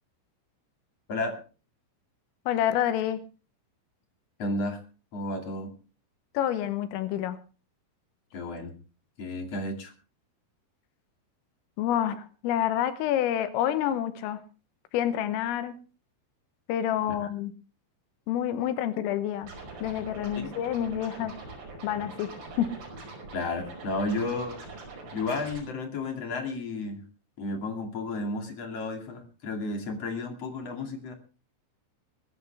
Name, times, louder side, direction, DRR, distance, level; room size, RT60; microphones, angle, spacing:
voice 1, 2.5-3.2 6.4-7.4 11.8-14.4 14.9-15.8 16.7-17.5 18.3-19.5 19.8-21.4 21.8-22.3 22.6-22.7, left 11 dB, 80° left, 11 dB, 3.6 m, -28 dB
voice 2, 4.4-4.8 5.1-5.7 8.3-8.7 9.2-9.9 17.2-17.3 20.3-20.5 23.3-24.6 25.1-27.0 27.4-31.1, left 2 dB, 40° left, 4 dB, 2.6 m, -32 dB
Scratching (performance technique), 19.4-25.6, right 3 dB, 45° right, 6.9 m, -43 dB
21.0 x 14.0 x 3.4 m, 0.35 s
omnidirectional pair, 6.0 m